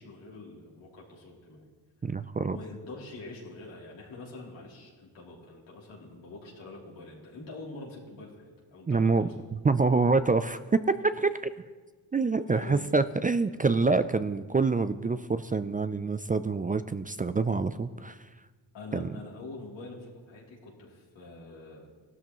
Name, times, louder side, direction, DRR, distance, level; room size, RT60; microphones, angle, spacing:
voice 1, 0.0-1.7 2.5-9.3 12.5-12.9 18.7-21.9, left 3 dB, 85° left, -5 dB, 3.2 m, -45 dB
voice 2, 2.0-2.6 8.9-11.5 12.1-18.2 18.9-19.1, right 4 dB, 20° right, 12 dB, 0.4 m, -26 dB
16.5 x 12.5 x 3.1 m, 1.4 s
supercardioid pair, 50°, 44 cm